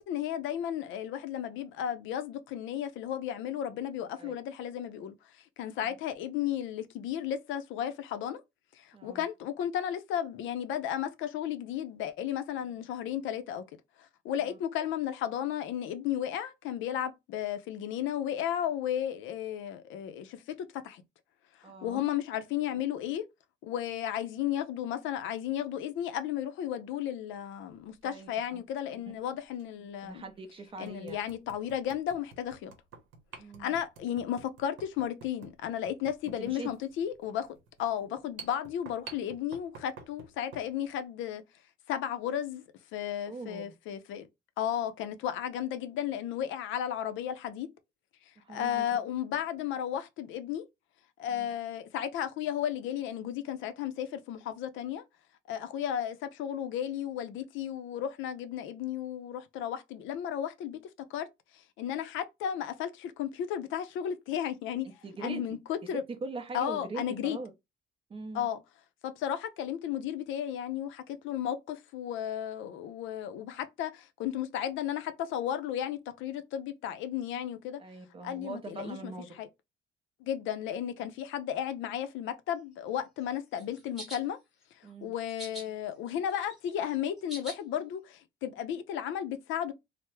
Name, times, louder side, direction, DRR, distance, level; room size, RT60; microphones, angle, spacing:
voice 1, 0.0-8.4 8.7-13.6 14.0-21.0 21.6-23.3 23.6-30.2 30.8-32.7 33.6-41.4 41.9-42.6 42.9-44.3 44.6-47.7 48.5-50.6 51.2-55.0 55.5-60.8 61.1-61.3 61.5-64.9 65.2-66.0 66.5-67.4 68.3-68.6 69.0-77.8 78.2-79.1 79.4-79.5 80.2-84.4 85.0-89.7, left 10 dB, 70° left, 0.5 m, -34 dB
voice 2, 8.9-9.2 14.4-14.6 21.6-22.0 28.0-28.6 30.0-31.2 33.4-33.7 36.2-36.7 43.3-43.6 48.4-48.9 51.3-51.5 65.0-65.6 65.8-67.5 68.1-68.5 77.8-79.4 84.8-85.1, right 3 dB, 25° right, 0.5 m, -42 dB
sound 1, 27.9-28.1 29.5-29.6 30.2-30.3 30.8-40.7, right 4 dB, 75° right, 0.8 m, -50 dB
sound 2, 83.6-84.2 85.3-85.6 86.1-87.6, right 1 dB, ahead, 0.9 m, -43 dB
3.3 x 2.0 x 3.0 m
cardioid pair, 160°, 21 cm